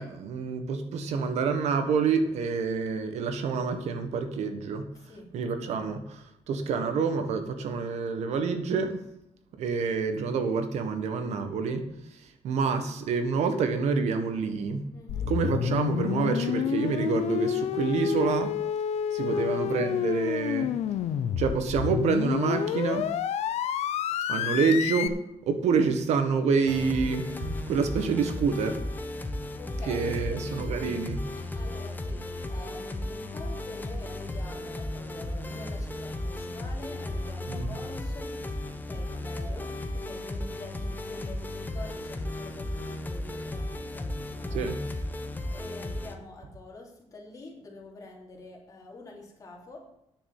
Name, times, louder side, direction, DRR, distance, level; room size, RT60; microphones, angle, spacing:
voice 1, 0.0-4.9 5.3-9.0 9.6-14.9 15.3-18.6 19.1-20.7 21.4-23.2 24.3-28.8 29.9-31.3 37.5-37.7 44.5-44.8, right 5 dB, 90° right, 7 dB, 1.6 m, -27 dB
voice 2, 5.0-5.3 14.9-15.3 19.3-19.5 24.2-24.3 29.3-30.5 31.5-38.4 38.7-44.7 45.1-49.9, left 2 dB, 30° left, -1 dB, 3.4 m, -46 dB
sound 1, 15.1-25.1, left 9 dB, 80° left, 0.7 m, -29 dB
sound 2, 26.7-46.1, left 1 dB, 15° left, 1.1 m, -35 dB
9.8 x 7.0 x 7.4 m, 0.83 s
cardioid pair, 155°, 11 cm